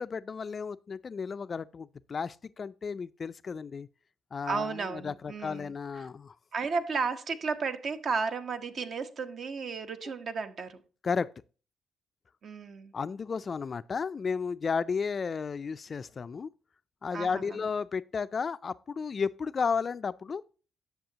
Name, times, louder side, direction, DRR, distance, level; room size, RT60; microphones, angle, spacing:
voice 1, 0.0-3.9 4.3-6.3 11.0-11.3 12.9-16.5 17.0-20.4, left 5 dB, 40° left, 0.4 m, -33 dB
voice 2, 4.5-6.1 6.5-10.8 12.4-12.9 17.1-17.6, right 5 dB, 55° right, 1.1 m, -33 dB
10.5 x 6.9 x 2.8 m
cardioid pair, 90°, 0 cm